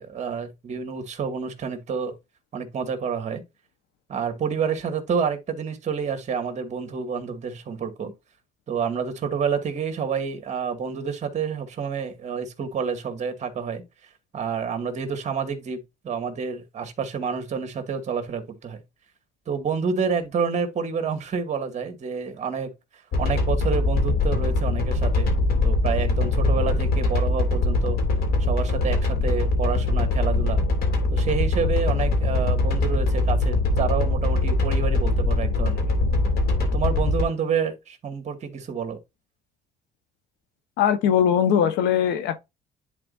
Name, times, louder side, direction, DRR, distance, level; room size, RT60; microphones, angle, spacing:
voice 1, 0.0-2.2 2.5-3.4 4.1-8.1 8.7-13.8 14.3-18.8 19.5-22.7 23.2-25.4 25.6-28.0 28.4-30.6 31.1-35.8 36.6-39.0, right 6 dB, 45° right, 2.2 m, -28 dB
sound 1, 23.1-37.2, left 2 dB, 65° left, 3.1 m, -22 dB
voice 2, 40.8-42.4, left 8 dB, 90° left, 1.2 m, -20 dB
10.5 x 4.2 x 2.6 m
cardioid pair, 110°, 17 cm